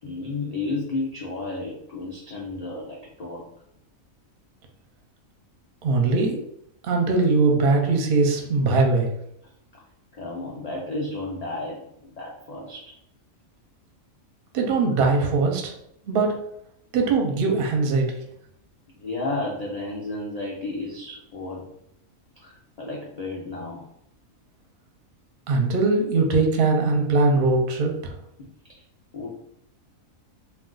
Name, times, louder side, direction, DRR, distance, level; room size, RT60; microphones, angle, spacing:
voice 1, 0.0-3.5 10.1-12.9 19.0-21.7 22.4-23.8 28.4-28.5 29.1-29.3, left 2 dB, 85° left, -3 dB, 0.3 m, -32 dB
voice 2, 5.8-6.4 6.8-9.1 14.5-15.7 16.1-16.3 16.9-18.1 25.5-28.1, right 3 dB, 55° right, 2 dB, 0.6 m, -21 dB
2.4 x 2.3 x 3.7 m, 0.75 s
omnidirectional pair, 1.4 m